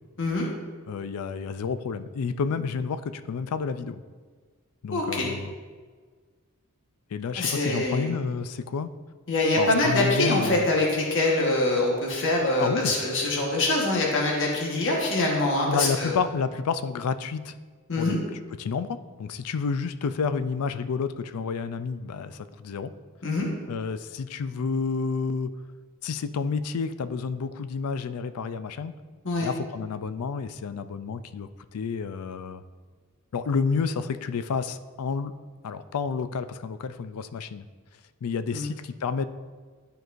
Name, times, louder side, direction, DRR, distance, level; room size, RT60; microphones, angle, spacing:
voice 1, 0.2-0.5 4.9-5.3 7.4-8.2 9.3-16.2 17.9-18.2 23.2-23.5 29.2-29.5 38.5-38.7, left 2 dB, 60° left, -2 dB, 1.3 m, -24 dB
voice 2, 0.9-4.0 4.8-5.5 7.1-8.9 9.6-10.7 12.6-12.9 15.7-17.5 18.0-18.1 18.6-22.9 23.7-25.5 26.0-28.9 29.4-32.6 33.3-35.3 35.6-37.7 38.2-39.2, left 5 dB, 75° left, 12 dB, 0.4 m, -30 dB
11.5 x 4.6 x 2.5 m, 1.5 s
head